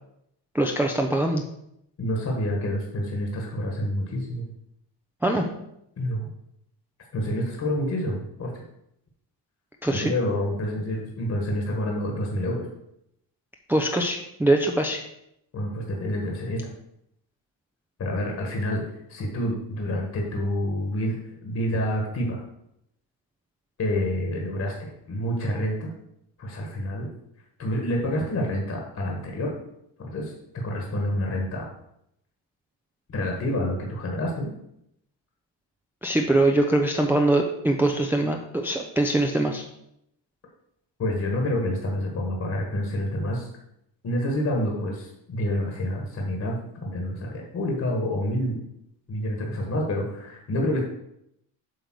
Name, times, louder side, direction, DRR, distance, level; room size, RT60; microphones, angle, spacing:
voice 1, 0.5-1.4 5.2-5.5 9.8-10.1 13.7-15.0 36.0-39.6, right 1 dB, 5° right, 2 dB, 0.5 m, -23 dB
voice 2, 2.0-4.4 6.0-6.3 7.1-8.5 9.9-12.7 15.5-16.6 18.0-18.8 19.1-21.2 21.4-22.4 23.8-25.9 26.4-27.1 27.6-29.5 30.0-31.6 33.1-34.5 41.0-43.5 44.0-48.6 49.1-50.8, left 1 dB, 35° left, 0 dB, 1.5 m, -28 dB
7.8 x 3.5 x 6.2 m, 0.78 s
cardioid pair, 125°, 44 cm